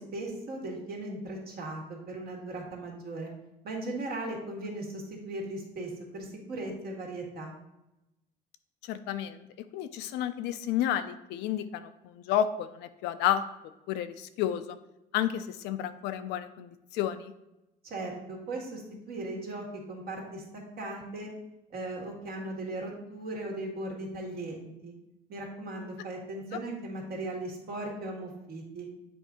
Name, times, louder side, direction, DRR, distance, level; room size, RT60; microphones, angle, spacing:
voice 1, 0.0-3.3 3.6-7.6 17.8-21.3 21.7-24.9 25.3-28.9, right 2 dB, 65° right, -1 dB, 1.8 m, -38 dB
voice 2, 8.8-9.5 9.7-13.4 13.9-14.8 15.1-17.3, left 10 dB, 90° left, 11 dB, 0.5 m, -31 dB
7.8 x 2.7 x 4.8 m, 0.92 s
cardioid pair, 110°, 17 cm